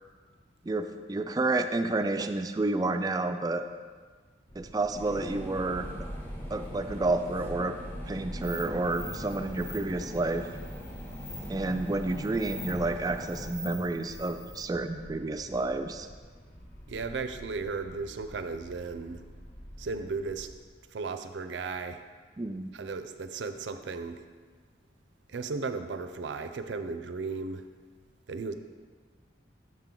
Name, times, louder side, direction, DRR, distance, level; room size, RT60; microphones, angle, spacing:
voice 1, 0.6-3.6 4.6-5.9 6.5-7.7 8.1-10.5 11.5-16.1 22.4-22.7, right 2 dB, 20° right, 8 dB, 0.3 m, -30 dB
sound 1, 4.5-20.6, equal, 35° left, 1.0 m, -49 dB
sound 2, 4.9-13.5, equal, 10° left, 0.8 m, -41 dB
sound 3, 8.4-14.6, equal, 85° left, 2.2 m, -45 dB
voice 2, 16.9-19.2 19.8-20.5 20.9-22.0 22.7-24.2 25.3-27.6 28.3-28.5, right 4 dB, 80° right, 9 dB, 0.5 m, -35 dB
7.3 x 5.9 x 3.7 m, 1.5 s
head